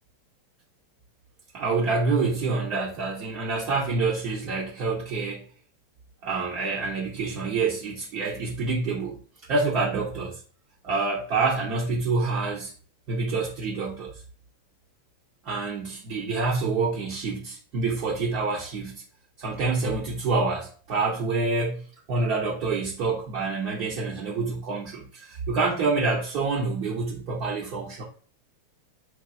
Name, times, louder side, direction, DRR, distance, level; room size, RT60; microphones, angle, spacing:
voice 1, 1.5-5.4 6.2-9.2 9.5-10.4 10.8-12.7 13.1-14.1 15.4-19.0 19.4-28.0, right 3 dB, 45° right, 0.7 m, -27 dB
3.0 x 2.4 x 2.5 m
figure-of-eight pair, 90°, 0 cm